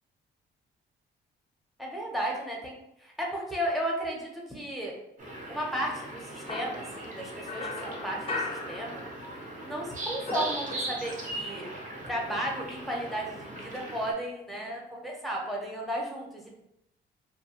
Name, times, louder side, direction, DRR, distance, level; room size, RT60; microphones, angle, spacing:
voice 1, 1.8-4.9 5.5-9.0 9.6-11.7 12.1-16.6, right 1 dB, ahead, -1 dB, 0.8 m, -34 dB
sound 1, 5.2-14.1, right 1 dB, 40° right, 0.8 m, -39 dB
sound 2, 6.5-9.5 9.8-11.3, left 2 dB, 30° left, 0.5 m, -38 dB
2.7 x 2.2 x 2.8 m, 0.79 s
cardioid pair, 90°, 20 cm